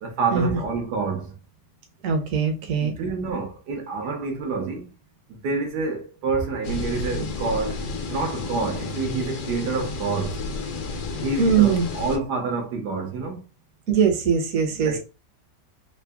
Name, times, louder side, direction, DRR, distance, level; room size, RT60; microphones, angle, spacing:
voice 1, 0.0-1.4 2.8-4.9 5.3-7.8 8.1-10.4 11.2-13.4 14.7-15.0, right 4 dB, 75° right, 1.4 m, -28 dB
voice 2, 2.0-2.9 11.4-11.9 13.9-15.0, right 6 dB, 55° right, 1.2 m, -21 dB
sound 1, 6.6-12.2, left 3 dB, 70° left, 1.4 m, -31 dB
3.9 x 2.1 x 3.4 m
omnidirectional pair, 1.8 m